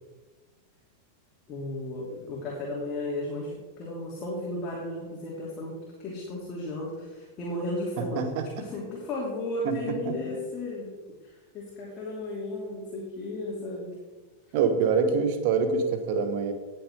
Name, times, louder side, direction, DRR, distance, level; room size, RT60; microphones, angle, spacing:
voice 1, 1.5-11.0 11.2-14.0, left 2 dB, 30° left, -5 dB, 3.0 m, -34 dB
voice 2, 8.0-8.4 9.6-10.1 14.5-16.5, right 5 dB, 45° right, 8 dB, 1.5 m, -25 dB
18.5 x 7.0 x 3.7 m, 1.2 s
figure-of-eight pair, 90°, 0 cm